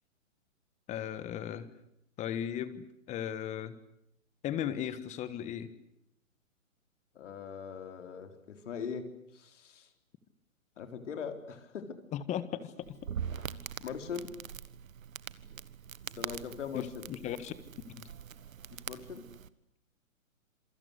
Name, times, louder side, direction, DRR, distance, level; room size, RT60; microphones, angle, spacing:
voice 1, 0.9-1.7 2.2-3.8 4.4-5.7 12.1-13.0 16.7-17.5 18.0-18.1, left 10 dB, 15° left, 14 dB, 1.4 m, -36 dB
voice 2, 7.1-9.1 9.3-9.9 10.8-12.0 13.3-14.3 16.2-17.0 18.7-19.3, left 6 dB, 60° left, 6 dB, 4.0 m, -41 dB
Crackle, 12.8-19.5, right 8 dB, 75° right, 1.4 m, -43 dB
27.0 x 24.5 x 8.3 m, 0.78 s
hypercardioid pair, 140°, 41 cm